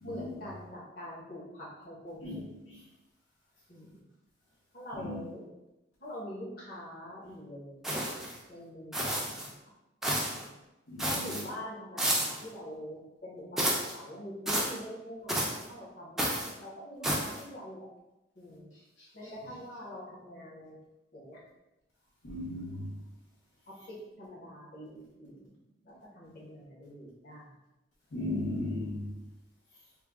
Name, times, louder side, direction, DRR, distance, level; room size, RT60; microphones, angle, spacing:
voice 1, 0.0-2.4 3.7-4.0 4.7-5.5 6.0-8.0 8.5-9.5 10.1-10.5 11.0-17.9 18.4-18.7 19.1-20.7 21.1-21.4 23.7-25.5 25.8-27.5, equal, 50° left, -6 dB, 1.1 m, -44 dB
sound 1, 7.8-8.4 8.9-9.5 10.0-10.4 11.0-11.4 12.0-12.4 13.6-13.9 14.5-14.8 15.3-15.6 16.2-16.5 17.0-17.4, right 1 dB, ahead, 0.4 m, -31 dB
voice 2, 10.9-11.4 22.2-22.9 28.1-29.1, left 1 dB, 85° left, -5 dB, 0.7 m, -36 dB
3.4 x 2.2 x 3.5 m, 0.97 s
head